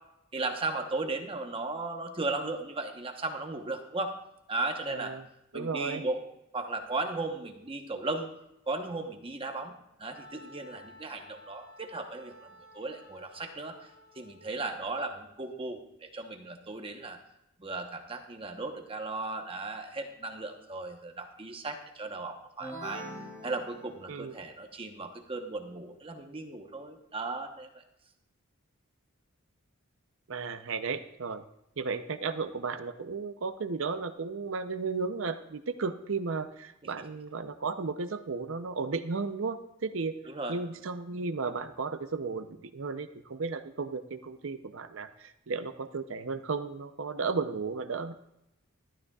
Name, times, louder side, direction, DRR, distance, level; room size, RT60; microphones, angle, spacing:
voice 1, 0.3-4.1 4.5-5.1 5.5-6.2 6.5-8.3 8.7-9.7 10.0-13.9 14.1-17.2 17.6-23.0 23.4-27.7 36.8-36.9 40.3-40.6, right 3 dB, 25° right, 4 dB, 1.0 m, -36 dB
voice 2, 4.9-5.2 5.5-6.0 24.1-24.3 30.3-31.4 31.8-40.2 40.5-48.1, right 4 dB, 65° right, 10 dB, 0.7 m, -34 dB
Wind instrument woodwind instrument, 10.1-14.7, left 1 dB, 90° left, 3.0 m, -54 dB
sound 1, 22.6-24.4, right 1 dB, 15° left, 2.8 m, -43 dB
14.0 x 12.0 x 2.4 m, 0.84 s
head